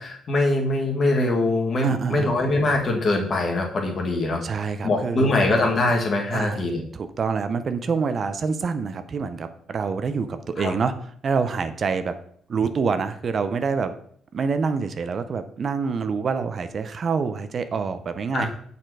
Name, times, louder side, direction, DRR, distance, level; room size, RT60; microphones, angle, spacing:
voice 1, 0.0-6.8 10.6-10.7 18.3-18.5, left 2 dB, 45° left, 1 dB, 1.7 m, -23 dB
voice 2, 1.8-2.3 4.4-5.5 6.3-6.6 6.9-10.9 11.2-12.1 12.5-13.9 14.3-18.5, right 5 dB, 50° right, 10 dB, 0.5 m, -26 dB
6.6 x 4.2 x 4.7 m, 0.62 s
cardioid pair, 90°, 0 cm